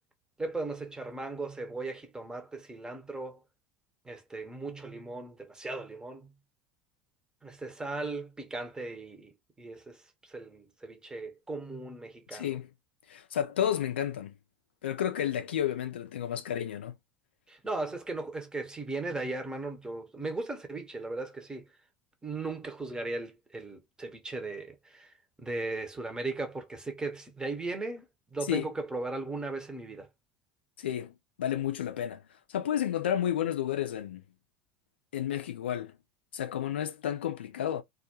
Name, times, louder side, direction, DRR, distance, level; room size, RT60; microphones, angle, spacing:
voice 1, 0.4-3.4 4.0-6.3 7.4-12.6 17.5-21.7 22.2-28.0 28.3-30.1, right 3 dB, 10° right, 0.7 m, -37 dB
voice 2, 12.3-12.7 13.1-14.3 14.8-16.9 28.5-28.7 30.8-31.1 31.4-32.2 32.5-34.2 35.1-36.0 36.3-37.8, left 10 dB, 70° left, 0.4 m, -31 dB
2.3 x 2.1 x 2.9 m
figure-of-eight pair, 70°, 6 cm